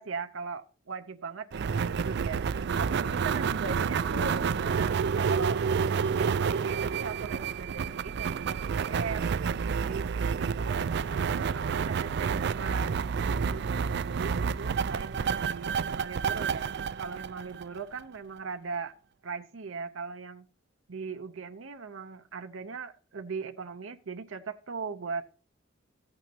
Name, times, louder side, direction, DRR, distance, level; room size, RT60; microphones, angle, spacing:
voice 1, 0.0-9.4 9.8-10.8 11.1-16.7 17.0-18.9 19.2-20.4 20.9-25.3, right 5 dB, 85° right, 6 dB, 0.7 m, -39 dB
sound 1, 1.5-18.0, right 6 dB, 60° right, 0.4 m, -29 dB
14.0 x 8.9 x 2.8 m, 0.36 s
head